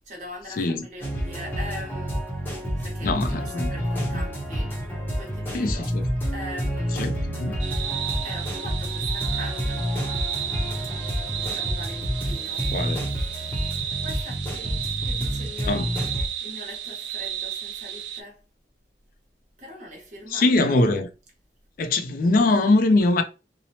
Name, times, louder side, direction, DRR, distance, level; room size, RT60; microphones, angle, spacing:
voice 1, 0.1-2.2 2.8-4.7 5.2-5.9 6.3-7.0 7.4-7.7 8.2-10.2 11.3-12.7 14.0-18.4 19.6-20.8, equal, 45° right, 1.0 m, -41 dB
voice 2, 0.6-0.9 3.0-3.7 4.1-4.2 5.5-6.0 7.0-7.1 7.4-7.5 12.7-13.0 15.7-15.9 20.3-21.1 21.8-23.2, left 2 dB, 50° left, 0.3 m, -22 dB
sound 1, 1.0-16.3, equal, 10° left, 0.6 m, -29 dB
sound 2, 7.6-18.2, right 9 dB, 80° right, 0.3 m, -33 dB
2.7 x 2.0 x 2.8 m
head